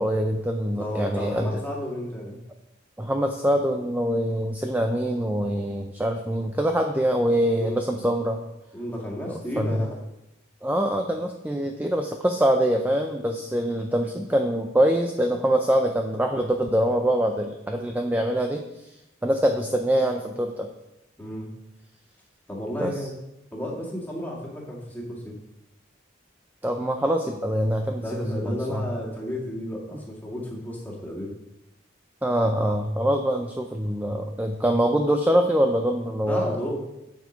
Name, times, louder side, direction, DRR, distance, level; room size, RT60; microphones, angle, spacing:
voice 1, 0.0-1.6 3.0-8.4 9.6-9.8 10.6-18.9 19.2-20.7 22.8-22.9 26.6-28.9 29.9-30.0 32.2-36.6, equal, 10° right, 4 dB, 0.5 m, -24 dB
voice 2, 0.8-2.4 7.5-7.8 8.7-10.0 21.2-21.5 22.5-23.2 23.5-25.4 28.0-31.3 36.2-36.8, equal, 10° left, -3 dB, 2.0 m, -32 dB
8.1 x 7.5 x 5.1 m, 0.90 s
head